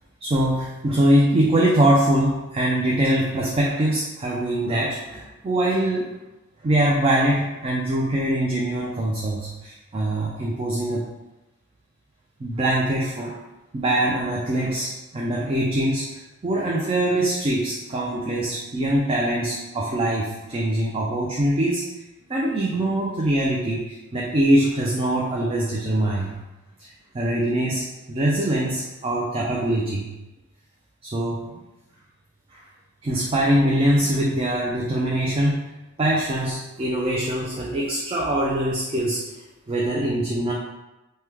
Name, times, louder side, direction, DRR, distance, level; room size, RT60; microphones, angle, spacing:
voice 1, 0.2-6.1 6.6-11.1 12.4-13.4 13.7-16.1 16.4-21.8 22.3-26.3 26.8-26.9 27.1-30.1 31.0-31.6 32.5-32.6 33.0-35.6 36.0-39.2 39.7-40.5, right 1 dB, 25° right, -4 dB, 0.3 m, -23 dB
3.0 x 2.1 x 3.4 m, 1.0 s
head